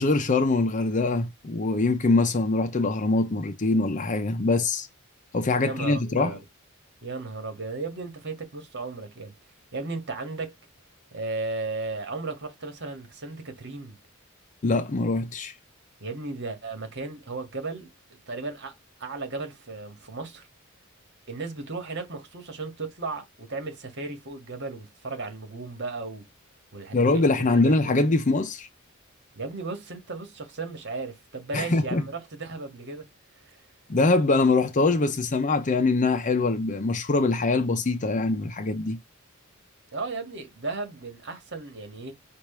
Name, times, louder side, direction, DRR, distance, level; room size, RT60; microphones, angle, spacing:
voice 1, 0.0-4.9 5.3-6.4 14.6-15.5 26.9-28.7 31.5-32.0 33.9-39.0, left 3 dB, 35° left, 0.6 m, -23 dB
voice 2, 5.6-6.4 7.0-9.3 9.7-10.5 11.1-14.0 16.0-17.9 18.3-18.7 19.0-20.4 21.3-26.2 26.7-27.7 29.3-33.1 33.4-33.6 39.9-42.1, right 3 dB, 55° right, 1.8 m, -35 dB
4.7 x 2.5 x 4.4 m
head